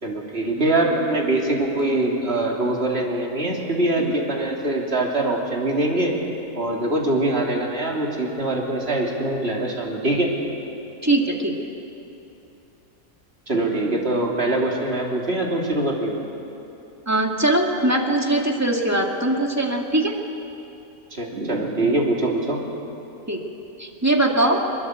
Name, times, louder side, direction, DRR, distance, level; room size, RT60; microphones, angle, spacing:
voice 1, 0.0-6.1 6.5-10.3 13.5-16.1 21.1-22.6, right 2 dB, 40° right, -1 dB, 3.3 m, -23 dB
voice 2, 11.0-11.5 17.1-20.1 23.3-23.4 23.8-24.6, right 1 dB, 10° right, 1 dB, 2.1 m, -21 dB
23.0 x 22.0 x 8.1 m, 2.9 s
omnidirectional pair, 1.6 m